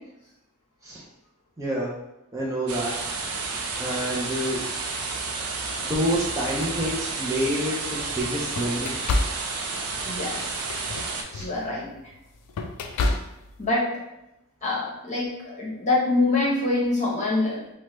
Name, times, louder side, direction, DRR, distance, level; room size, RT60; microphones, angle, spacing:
voice 1, 1.6-1.9 2.3-2.9 3.8-4.6 5.8-8.9 11.3-11.5, equal, 15° right, -5 dB, 0.4 m, -28 dB
sound 1, 2.7-11.2, right 4 dB, 80° right, 0.5 m, -31 dB
sound 2, 5.4-5.6 6.3-7.6 8.1-13.7, left 2 dB, 90° left, 0.3 m, -31 dB
voice 2, 10.0-10.4 11.4-11.9 13.6-13.9 14.6-17.6, left 2 dB, 30° left, -5 dB, 0.8 m, -25 dB
3.1 x 2.1 x 3.0 m, 0.89 s
head